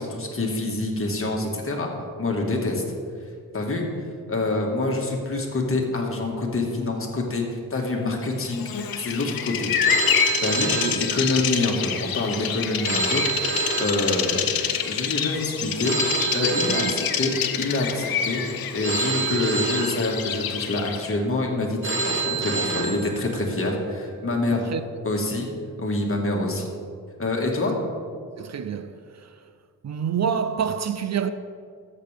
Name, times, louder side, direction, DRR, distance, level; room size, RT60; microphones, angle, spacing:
voice 1, 0.0-1.9 2.2-2.8 3.5-3.8 4.3-9.7 10.4-14.5 14.8-16.0 16.3-17.3 17.6-18.4 18.7-24.6 25.0-25.5 25.8-26.6 27.2-27.7, left 2 dB, 40° left, 1.7 m, -26 dB
Bird vocalization bird call bird song, 8.5-21.2, left 8 dB, 80° left, 0.7 m, -27 dB
Telephone, 9.8-11.7 12.8-14.7 15.8-17.7 18.8-20.7 21.8-23.7, right 4 dB, 35° right, 1.3 m, -28 dB
voice 2, 24.5-24.8 28.4-29.3 29.8-31.3, right 7 dB, 50° right, 0.5 m, -27 dB
13.0 x 7.7 x 3.5 m
cardioid pair, 85°, 34 cm